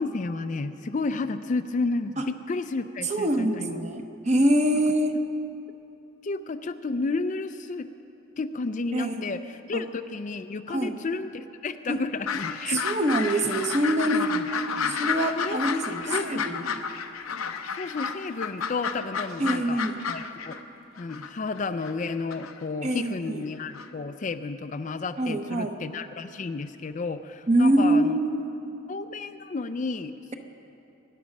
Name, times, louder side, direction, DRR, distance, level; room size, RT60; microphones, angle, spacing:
voice 1, 0.0-3.8 6.2-7.9 8.4-12.8 14.1-14.5 14.8-15.0 15.4-15.6 16.1-16.7 17.7-19.8 20.1-20.6 21.0-28.2 28.9-30.3, left 3 dB, 35° left, 9 dB, 0.4 m, -32 dB
voice 2, 3.0-5.2 8.9-9.3 9.7-9.8 10.7-11.0 11.9-12.0 12.7-14.3 14.9-16.7 19.4-20.0 22.8-23.5 25.2-25.8 27.5-28.4, right 1 dB, 35° right, 6 dB, 0.9 m, -25 dB
sound 1, 12.3-20.6 21.0-22.6 23.7-23.9, left 6 dB, 85° left, 0.8 m, -31 dB
24.0 x 10.0 x 5.3 m, 2.9 s
head